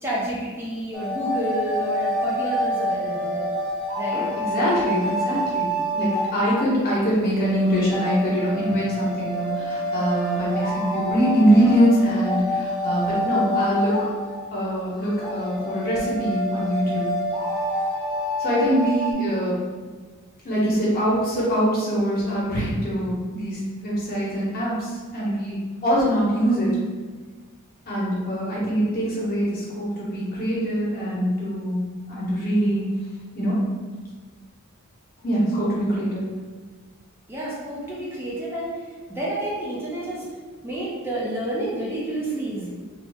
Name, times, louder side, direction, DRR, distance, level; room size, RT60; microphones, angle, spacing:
voice 1, 0.0-3.5 4.0-4.3 37.3-38.7 39.1-40.3 40.6-42.7, right 1 dB, 10° right, -7 dB, 0.4 m, -29 dB
sound 1, 0.9-19.1, equal, 15° left, 0.8 m, -27 dB
voice 2, 4.1-5.7 5.9-13.9 14.5-17.1 18.4-19.5 20.4-25.6 25.8-26.7 27.9-32.8 33.3-33.6 35.2-36.3, equal, 40° left, -7 dB, 1.0 m, -23 dB
2.8 x 2.0 x 3.4 m, 1.4 s
head